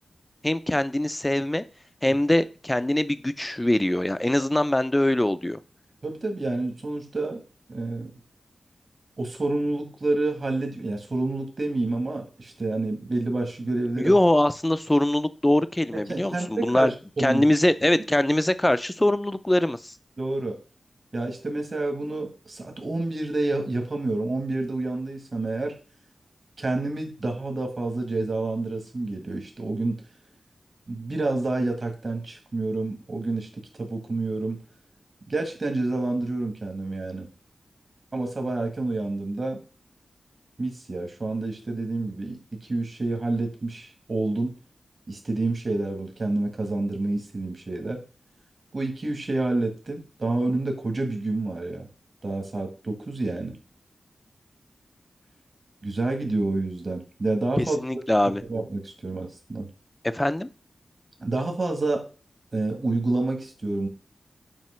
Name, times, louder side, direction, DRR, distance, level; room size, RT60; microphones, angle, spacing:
voice 1, 0.4-1.6 2.0-5.6 14.0-16.9 17.2-19.9 57.6-58.4 60.1-60.5, left 1 dB, 10° left, 0.4 m, -23 dB
voice 2, 6.0-7.4 7.7-8.1 9.2-14.1 15.9-17.4 20.2-20.6 21.1-25.8 26.6-30.0 30.9-33.5 33.8-34.6 35.3-37.3 38.1-39.6 40.6-44.6 45.1-48.0 48.7-51.9 52.2-53.6 55.8-57.8 58.5-59.7 61.2-62.1 62.5-63.9, right 2 dB, 40° right, 1.7 m, -28 dB
7.4 x 2.9 x 5.6 m
wide cardioid pair, 115°, 0 cm